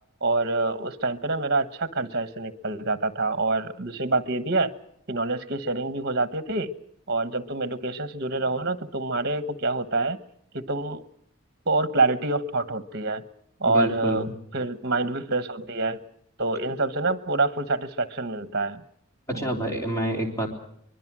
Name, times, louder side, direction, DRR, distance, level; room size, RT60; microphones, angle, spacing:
voice 1, 0.2-4.7 5.1-6.7 7.1-10.2 10.5-11.1 11.6-13.2 13.6-16.0 16.4-18.8 19.3-19.6, right 2 dB, 50° right, 12 dB, 1.2 m, -26 dB
voice 2, 13.7-14.3 19.3-20.5, right 1 dB, 15° left, 2 dB, 3.6 m, -27 dB
24.0 x 21.5 x 6.1 m, 0.70 s
head